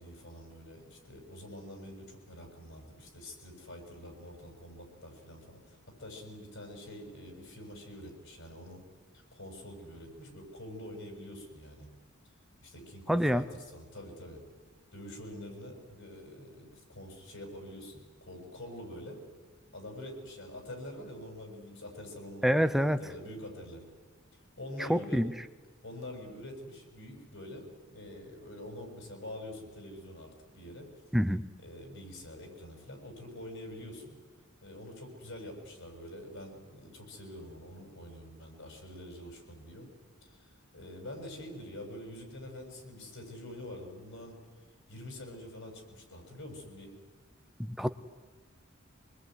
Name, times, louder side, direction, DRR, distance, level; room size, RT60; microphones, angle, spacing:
voice 1, 0.0-8.8 9.1-11.9 12.6-14.4 14.9-19.2 19.7-23.8 24.6-25.2 25.8-30.9 31.6-34.2 34.6-39.9 40.2-44.4 44.9-46.9, left 1 dB, 65° left, 3 dB, 7.3 m, -46 dB
voice 2, 13.1-13.4 22.4-23.0 24.8-25.3 31.1-31.4 47.8-47.9, equal, ahead, 10 dB, 0.8 m, -26 dB
25.5 x 21.0 x 9.6 m, 1.3 s
head